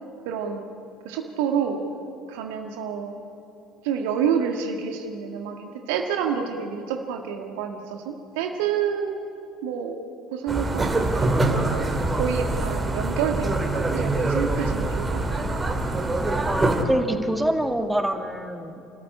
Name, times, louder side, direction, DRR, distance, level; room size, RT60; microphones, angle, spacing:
voice 1, 0.3-0.6 1.0-1.8 2.3-3.1 3.8-9.2 9.6-10.0 10.3-15.2, right 7 dB, 65° right, 4 dB, 1.7 m, -28 dB
sound 1, 10.5-16.8, right 2 dB, 20° right, 2.8 m, -24 dB
voice 2, 16.5-18.8, right 1 dB, 5° right, 6 dB, 2.1 m, -25 dB
28.5 x 14.5 x 9.9 m, 2.7 s
figure-of-eight pair, 60°, 0 cm